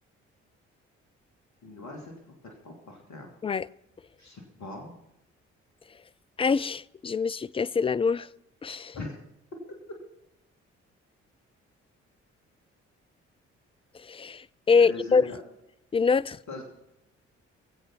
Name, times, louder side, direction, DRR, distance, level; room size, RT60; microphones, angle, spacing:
voice 1, 1.6-2.1 2.4-3.3 4.2-4.9 8.9-9.2 14.8-15.4 16.5-16.6, left 2 dB, 50° left, 3.2 m, -40 dB
voice 2, 6.4-8.3 8.6-9.0 14.0-15.3 15.9-16.4, left 5 dB, 15° left, 0.4 m, -25 dB
21.0 x 8.0 x 5.9 m
figure-of-eight pair, 40°, 35 cm